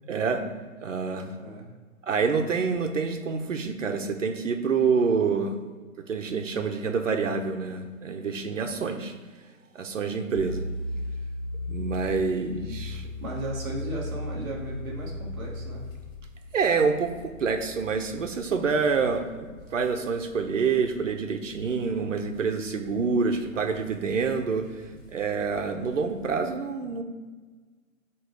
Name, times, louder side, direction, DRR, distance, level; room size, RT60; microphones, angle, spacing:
voice 1, 0.1-0.4 0.8-1.4 2.0-5.6 6.1-9.1 9.7-10.7 11.7-13.1 16.5-24.8 25.1-27.0, right 5 dB, 60° right, 5 dB, 0.8 m, -27 dB
voice 2, 1.4-1.7 12.9-15.9 23.5-23.6, right 1 dB, 5° right, -14 dB, 0.9 m, -36 dB
sound 1, 10.3-26.3, left 1 dB, 60° left, 1.4 m, -39 dB
8.1 x 3.1 x 4.8 m, 1.4 s
hypercardioid pair, 175°, 42 cm